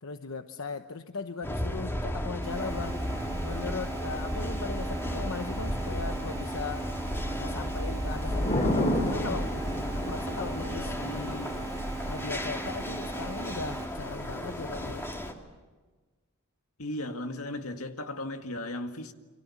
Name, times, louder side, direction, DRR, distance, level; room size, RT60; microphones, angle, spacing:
voice 1, 0.0-3.0 3.4-6.9 7.4-9.5 9.9-11.5 12.1-15.1, left 4 dB, 70° left, 1.0 m, -38 dB
sound 1, 1.4-15.3, equal, 10° left, 2.6 m, -34 dB
sound 2, 2.4-13.9, right 5 dB, 15° right, 3.1 m, -41 dB
Thunder / Rain, 2.6-15.3, left 1 dB, 40° left, 6.1 m, -37 dB
voice 2, 16.8-19.1, left 1 dB, 85° left, 2.0 m, -36 dB
29.5 x 25.0 x 7.3 m
head